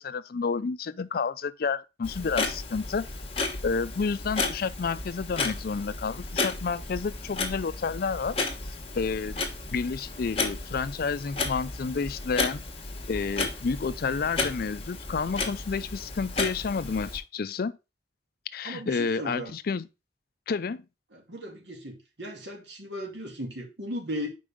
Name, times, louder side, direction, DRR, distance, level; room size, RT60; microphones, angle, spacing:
voice 1, 0.0-3.1 3.6-8.4 8.9-9.4 9.7-12.6 13.1-17.8 18.5-19.9 20.5-20.8, left 5 dB, 55° left, 0.4 m, -30 dB
Clock, 2.0-17.2, left 3 dB, 35° left, 1.3 m, -33 dB
voice 2, 18.6-19.5 21.1-24.3, equal, 80° right, 2.3 m, -37 dB
5.3 x 4.7 x 4.9 m
head